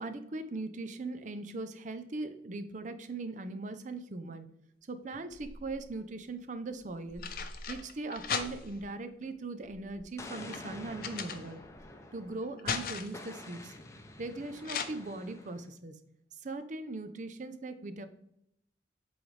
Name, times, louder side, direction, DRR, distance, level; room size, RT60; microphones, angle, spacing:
voice 1, 0.0-4.5 4.9-7.2 7.7-11.6 12.1-13.7 14.2-16.0 16.4-18.1, right 2 dB, 45° right, 10 dB, 0.5 m, -40 dB
sound 1, 5.1-5.9 6.8-8.9 9.6-11.9 12.2-13.3 14.6-14.8, left 6 dB, 55° left, 0.6 m, -38 dB
Explosion, 10.2-12.6 13.1-15.7, left 1 dB, 15° left, 0.6 m, -48 dB
8.0 x 3.9 x 3.2 m, 0.75 s
head